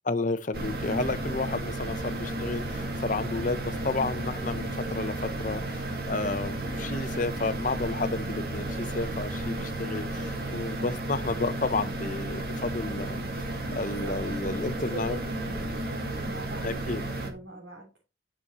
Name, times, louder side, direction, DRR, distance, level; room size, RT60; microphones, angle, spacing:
voice 1, 0.0-15.2 16.6-17.0, left 3 dB, 45° left, 0.7 m, -32 dB
sound 1, 0.5-17.3, right 1 dB, 55° right, 2.1 m, -33 dB
voice 2, 13.8-17.9, right 2 dB, 85° right, 3.6 m, -41 dB
9.7 x 7.0 x 3.0 m
head